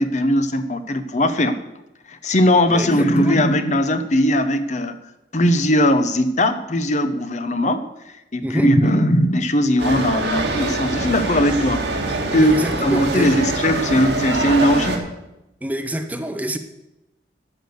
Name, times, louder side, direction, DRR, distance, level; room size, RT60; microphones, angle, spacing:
voice 1, 0.0-1.6 2.1-5.0 5.3-7.9 8.3-12.5 12.8-15.0, left 1 dB, 40° left, 10 dB, 0.8 m, -19 dB
voice 2, 2.7-3.4 8.4-9.1 12.4-13.3 15.6-16.6, equal, 10° right, 7 dB, 0.7 m, -26 dB
sound 1, 9.8-15.0, right 2 dB, 85° right, 2.0 m, -24 dB
12.0 x 6.6 x 8.0 m, 0.93 s
head